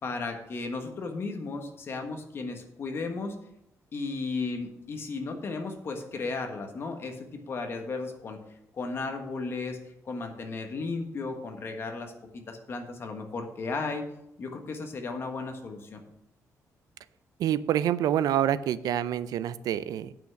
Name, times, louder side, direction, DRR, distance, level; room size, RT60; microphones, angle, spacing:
voice 1, 0.0-3.4 3.9-8.4 8.7-14.0 14.4-16.0, left 3 dB, 40° left, 5 dB, 1.3 m, -35 dB
voice 2, 17.4-20.1, right 11 dB, 80° right, 15 dB, 0.5 m, -27 dB
9.0 x 5.8 x 6.4 m, 0.80 s
wide cardioid pair, 170°, 6 cm